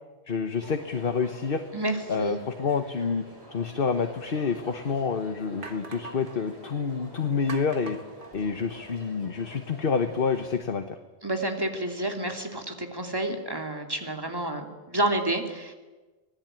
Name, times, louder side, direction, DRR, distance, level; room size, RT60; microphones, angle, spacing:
voice 1, 0.3-1.6 2.1-3.2 3.5-8.0 8.3-11.0, left 5 dB, 60° left, 8 dB, 1.3 m, -28 dB
Crowd, 0.6-10.6, right 1 dB, 90° right, 5.3 m, -47 dB
voice 2, 1.7-2.4 11.2-15.7, right 1 dB, 20° right, 3 dB, 2.9 m, -29 dB
sound 1, 5.6-6.4 7.5-9.0, right 3 dB, 55° right, 1.8 m, -43 dB
25.5 x 19.5 x 9.0 m, 1.2 s
omnidirectional pair, 1.1 m